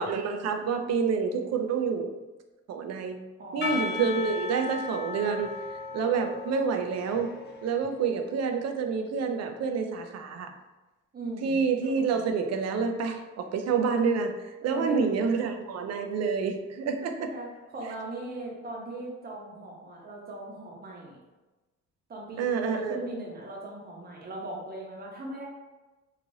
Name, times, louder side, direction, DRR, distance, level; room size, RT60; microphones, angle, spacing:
voice 1, 0.0-2.1 2.7-3.2 3.5-5.6 5.9-7.3 7.6-10.5 11.4-14.3 14.6-17.3 22.4-23.0, right 5 dB, 60° right, 6 dB, 0.4 m, -28 dB
voice 2, 3.4-3.9 7.9-8.0 11.1-11.6 14.6-15.1 17.3-21.2 22.1-25.5, right 2 dB, 30° right, -2 dB, 0.8 m, -38 dB
Percussion / Church bell, 3.6-8.6, left 4 dB, 35° left, 0.6 m, -37 dB
3.1 x 2.4 x 2.7 m, 1.1 s
cardioid pair, 90°, 30 cm